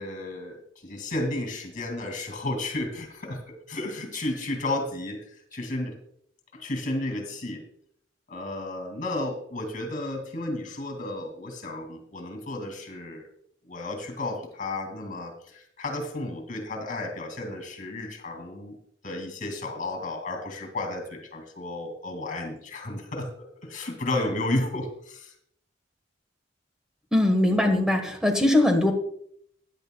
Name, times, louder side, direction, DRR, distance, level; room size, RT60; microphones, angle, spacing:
voice 1, 0.0-6.0 6.5-7.6 8.3-13.3 13.6-18.8 19.0-25.3, left 2 dB, 45° left, 5 dB, 2.4 m, -33 dB
voice 2, 27.1-28.9, left 1 dB, 5° right, 4 dB, 1.3 m, -21 dB
15.5 x 10.5 x 2.3 m, 0.66 s
head